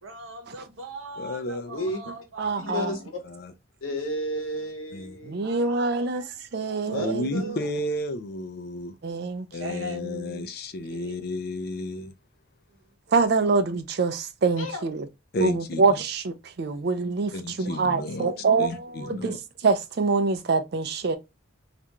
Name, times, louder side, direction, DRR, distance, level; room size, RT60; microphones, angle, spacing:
voice 1, 0.0-2.9 5.4-6.3 6.6-6.8 7.1-7.7 9.6-10.0 10.9-11.2 16.7-16.8, right 1 dB, 80° right, 0.8 m, -41 dB
voice 2, 1.2-1.7 3.2-3.5 4.9-5.2 7.0-8.9 9.5-12.1 15.3-15.8 17.3-18.3 18.6-19.4, left 1 dB, 50° left, 0.4 m, -32 dB
voice 3, 1.7-2.0 2.6-3.1 3.8-5.4 6.9-7.6 14.6-14.8, equal, 90° left, 0.9 m, -32 dB
voice 4, 2.4-3.0 5.2-7.6 9.0-10.5 13.1-15.1 15.4-21.2, right 4 dB, 50° right, 0.4 m, -26 dB
2.4 x 2.2 x 2.8 m
head